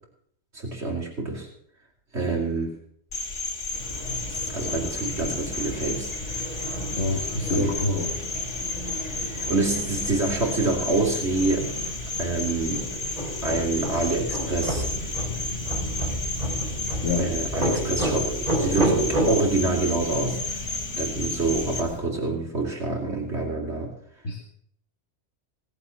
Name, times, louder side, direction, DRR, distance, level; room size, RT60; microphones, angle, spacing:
voice 1, 0.5-1.5 2.1-2.7 4.1-6.1 7.5-7.7 9.2-11.7 12.2-12.9 13.4-14.9 17.2-20.6 21.0-23.9, right 3 dB, 65° right, -2 dB, 3.7 m, -27 dB
Cricket, 3.1-21.8, left 3 dB, 90° left, 3.0 m, -33 dB
Fowl / Chirp tweet, 3.7-22.0, equal, 35° left, 4.6 m, -38 dB
voice 2, 7.0-8.1 17.0-17.3 17.6-17.8 24.2-24.4, left 2 dB, 70° left, 2 dB, 2.2 m, -27 dB
sound 1, 12.8-19.3, right 1 dB, 35° right, 3.7 m, -28 dB
19.0 x 7.8 x 7.2 m, 0.65 s
omnidirectional pair, 1.2 m